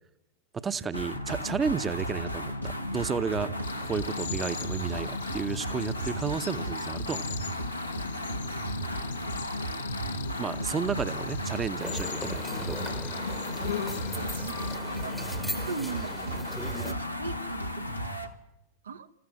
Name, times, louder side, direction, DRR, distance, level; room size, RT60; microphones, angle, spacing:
voice 1, 0.5-3.5 3.8-7.3 10.4-12.8, right 5 dB, 20° right, 0.9 m, -32 dB
sound 1, 0.9-18.3, equal, 90° left, 1.5 m, -34 dB
Cricket, 3.6-14.8, left 8 dB, 65° left, 1.2 m, -40 dB
sound 2, 11.8-16.9, left 1 dB, ahead, 1.1 m, -40 dB
voice 2, 14.2-17.9 18.8-19.1, right 5 dB, 70° right, 0.9 m, -41 dB
28.0 x 15.0 x 7.6 m
figure-of-eight pair, 90°, 0 cm